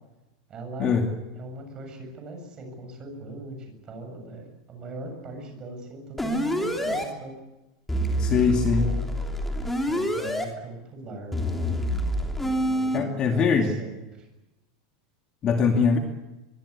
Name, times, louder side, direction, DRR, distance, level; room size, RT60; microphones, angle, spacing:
voice 1, 0.5-1.0 1.4-7.4 8.1-8.4 8.8-9.1 9.8-11.5 12.4-14.3, right 2 dB, 20° right, 4 dB, 7.8 m, -40 dB
sound 1, 6.2-7.0 7.9-10.4 11.3-13.0, equal, 5° left, 3.1 m, -27 dB
voice 2, 8.2-8.9 12.9-13.7 15.4-16.0, left 5 dB, 25° left, 4 dB, 2.4 m, -22 dB
24.5 x 23.5 x 8.4 m, 1.0 s
supercardioid pair, 175°, 4 cm